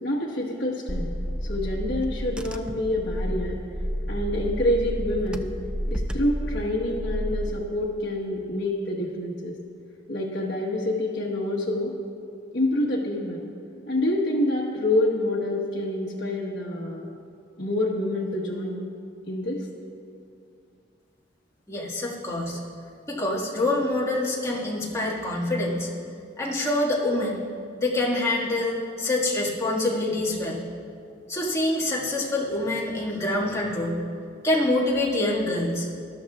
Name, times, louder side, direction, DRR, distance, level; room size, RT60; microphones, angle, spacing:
voice 1, 0.0-1.1 1.4-3.6 4.1-5.5 5.9-9.5 10.1-12.0 12.5-13.4 13.9-17.1 17.6-18.9 19.3-19.7, left 1 dB, 60° left, -5 dB, 1.3 m, -27 dB
Car / Engine, 0.9-7.5, equal, 5° right, 0.4 m, -30 dB
voice 2, 21.7-22.6 23.1-25.9 26.4-27.4 27.8-30.6 31.3-34.0 34.4-35.9, left 2 dB, 15° left, -5 dB, 1.8 m, -26 dB
19.5 x 12.5 x 2.4 m, 2.4 s
head